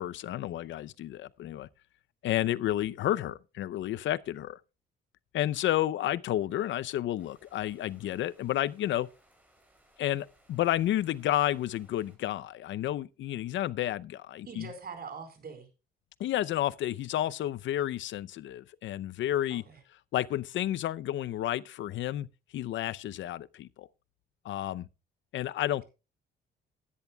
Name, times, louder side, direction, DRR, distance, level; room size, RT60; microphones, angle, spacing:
voice 1, 0.0-1.7 2.2-4.6 5.3-9.1 10.0-14.7 16.2-19.6 20.1-22.3 22.5-23.9 24.4-24.9 25.3-25.8, left 13 dB, 70° left, 0.6 m, -31 dB
sound 1, 7.2-12.2, right 1 dB, 10° right, 4.8 m, -65 dB
voice 2, 14.5-15.7 19.5-19.8, right 5 dB, 50° right, 4.5 m, -43 dB
15.5 x 10.5 x 2.3 m
cardioid pair, 90°, 20 cm